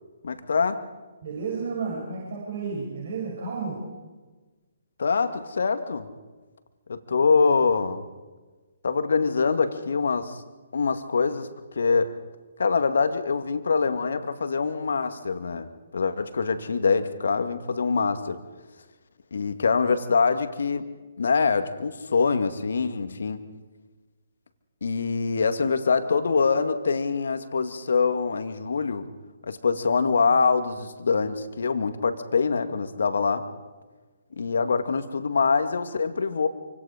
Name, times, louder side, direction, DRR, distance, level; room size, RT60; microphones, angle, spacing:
voice 1, 0.2-0.9 5.0-6.1 6.9-8.0 8.8-10.4 10.7-11.5 11.8-12.2 12.6-15.7 15.9-18.4 19.3-20.9 21.2-23.4 24.8-29.1 29.4-33.5 34.4-36.5, left 5 dB, 65° left, 9 dB, 2.1 m, -24 dB
voice 2, 1.2-3.8, right 4 dB, 55° right, -2 dB, 7.4 m, -32 dB
28.0 x 25.5 x 5.1 m, 1.3 s
figure-of-eight pair, 135°, 0 cm